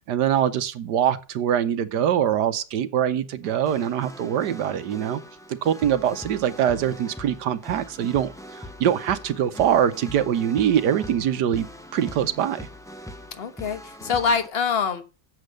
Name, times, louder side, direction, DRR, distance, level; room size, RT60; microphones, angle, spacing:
voice 1, 0.0-5.2 5.6-8.3 8.8-11.7 11.9-12.7, right 9 dB, 70° right, 1.3 m, -23 dB
sound 1, 3.4-14.5, equal, 5° left, 0.4 m, -41 dB
voice 2, 13.4-15.0, left 5 dB, 40° left, 1.2 m, -25 dB
8.5 x 7.3 x 6.3 m
omnidirectional pair, 1.9 m